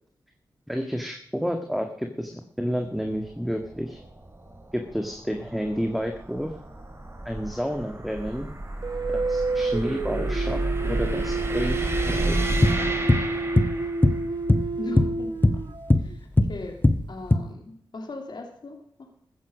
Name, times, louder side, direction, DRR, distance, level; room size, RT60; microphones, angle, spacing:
voice 1, 0.7-4.0 4.7-6.5 7.2-8.5 9.1-12.6, equal, ahead, 5 dB, 1.7 m, -30 dB
sound 1, 2.9-14.2, right 1 dB, 30° right, 3.4 m, -31 dB
sound 2, 8.8-16.2, right 3 dB, 55° right, 1.1 m, -30 dB
sound 3, 12.6-13.3 13.6-13.8 14.0-15.2 15.4-16.6 16.8-17.4, left 2 dB, 25° left, 1.2 m, -19 dB
voice 2, 14.8-15.7 16.0-16.8 17.1-19.1, left 2 dB, 60° left, 3 dB, 2.8 m, -38 dB
14.5 x 10.0 x 6.3 m, 0.66 s
cardioid pair, 50°, 9 cm